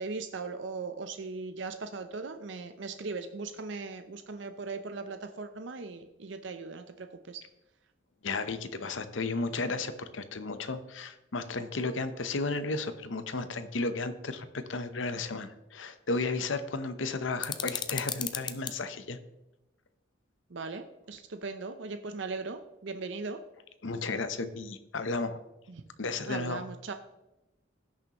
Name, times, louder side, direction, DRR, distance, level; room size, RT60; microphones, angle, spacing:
voice 1, 0.0-7.4 20.5-23.4 25.7-25.8 26.3-26.9, right 4 dB, 75° right, 7 dB, 0.6 m, -39 dB
voice 2, 8.2-19.2 23.8-25.4 26.0-26.6, left 3 dB, 80° left, 11 dB, 0.8 m, -33 dB
sound 1, 17.4-18.8, left 8 dB, 25° left, 0.5 m, -35 dB
16.5 x 6.5 x 3.0 m, 0.95 s
head